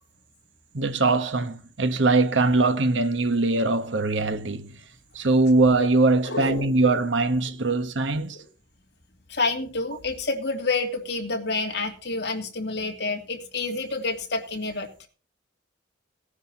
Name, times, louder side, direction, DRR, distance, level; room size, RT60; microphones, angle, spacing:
voice 1, 0.7-4.7 5.1-8.4, right 3 dB, 70° right, 1.1 m, -22 dB
voice 2, 6.2-6.7 7.6-7.8 9.3-14.9, left 3 dB, 60° left, 2.7 m, -28 dB
18.5 x 10.0 x 2.8 m
head